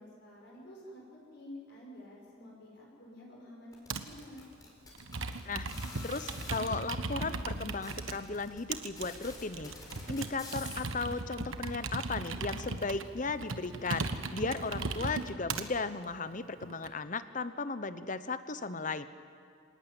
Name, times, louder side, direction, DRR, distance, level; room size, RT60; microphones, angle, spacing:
voice 1, 0.0-4.4, left 1 dB, 55° left, -3 dB, 5.9 m, -50 dB
sound 1, 3.7-6.6 7.3-7.4 7.6-11.1, left 2 dB, 20° left, 4.9 m, -48 dB
Computer keyboard, 3.9-4.2 4.9-8.1 8.7-15.7 16.3-16.9, right 3 dB, 85° right, 1.4 m, -37 dB
voice 2, 6.0-9.7 10.1-19.0, left 3 dB, 40° left, 12 dB, 0.9 m, -36 dB
26.5 x 18.5 x 9.1 m, 2.4 s
head